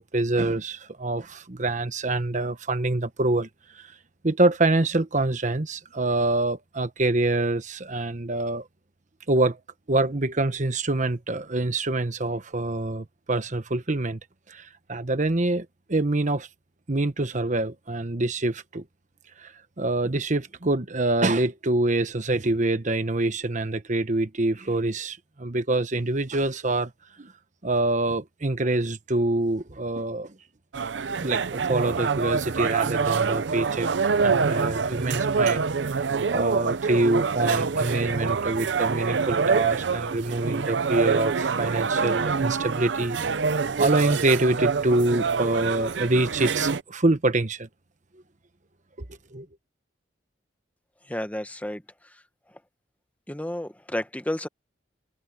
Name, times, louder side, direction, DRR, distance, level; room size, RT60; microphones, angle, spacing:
voice 1, 0.0-3.5 3.7-3.9 4.2-8.7 9.3-9.6 9.9-14.2 14.5-16.5 16.9-18.8 19.4-26.9 27.2-27.3 27.6-30.4 30.8-30.9 31.2-33.9 34.2-35.7 36.3-47.7 49.3-49.5, right 2 dB, 45° right, 1.3 m, -25 dB
sound 1, 30.7-46.8, right 5 dB, 80° right, 0.6 m, -26 dB
voice 2, 51.1-51.8 53.3-54.5, left 1 dB, 10° left, 1.3 m, -31 dB
head